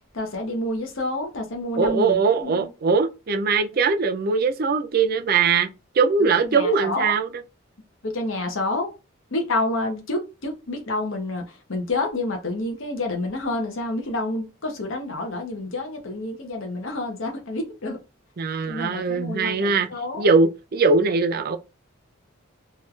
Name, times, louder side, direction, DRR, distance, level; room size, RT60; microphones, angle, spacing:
voice 1, 0.1-2.7 6.2-7.2 8.0-8.9 9.3-18.0 18.7-20.3, left 2 dB, 65° left, 0.8 m, -29 dB
voice 2, 1.8-5.7 5.9-7.3 18.4-19.9 20.1-21.6, right 4 dB, 45° right, 0.4 m, -21 dB
3.1 x 2.4 x 3.1 m
head